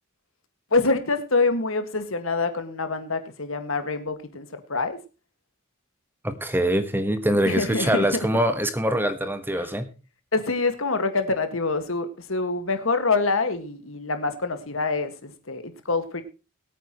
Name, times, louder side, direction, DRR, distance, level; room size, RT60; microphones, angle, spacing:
voice 1, 0.7-5.0 7.5-8.1 10.3-16.2, left 3 dB, 65° left, 9 dB, 1.9 m, -26 dB
voice 2, 6.2-9.9, right 1 dB, 10° right, 10 dB, 1.2 m, -24 dB
22.0 x 9.0 x 3.1 m, 0.32 s
head